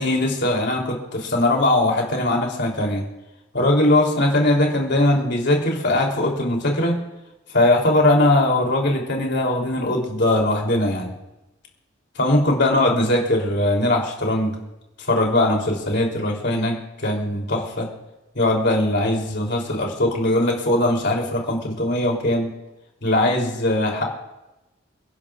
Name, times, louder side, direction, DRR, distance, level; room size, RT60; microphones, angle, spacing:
voice 1, 0.0-3.0 3.5-7.0 7.5-11.1 12.1-14.6 15.1-16.7 17.0-17.9 18.3-22.5 23.0-24.0, left 1 dB, 60° left, 0 dB, 3.2 m, -20 dB
29.5 x 11.0 x 2.5 m, 0.95 s
head